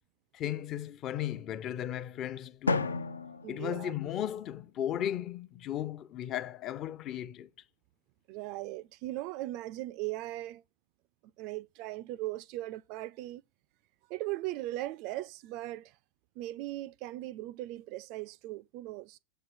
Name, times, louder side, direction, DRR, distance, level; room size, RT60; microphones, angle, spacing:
voice 1, 0.3-3.0 3.5-7.5, left 11 dB, 35° left, 0.6 m, -36 dB
Drum, 2.7-4.6, left 3 dB, 75° left, 0.6 m, -34 dB
voice 2, 3.4-3.9 8.3-10.6 11.4-13.4 14.1-16.0 16.4-19.2, right 17 dB, 45° right, 0.3 m, -38 dB
7.7 x 4.5 x 6.1 m
figure-of-eight pair, 90°, 0 cm